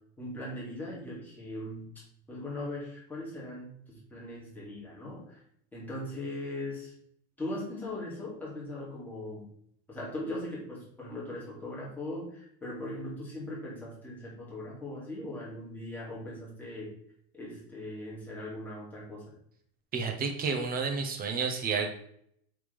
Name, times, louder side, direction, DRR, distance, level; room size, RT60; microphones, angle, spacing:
voice 1, 0.2-1.9 2.3-5.4 5.7-6.9 7.4-9.5 9.9-16.9 17.3-19.3, left 1 dB, 5° left, -7 dB, 2.3 m, -39 dB
voice 2, 19.9-21.9, right 5 dB, 25° right, 4 dB, 0.9 m, -30 dB
8.3 x 3.6 x 3.4 m, 0.67 s
supercardioid pair, 155°, 37 cm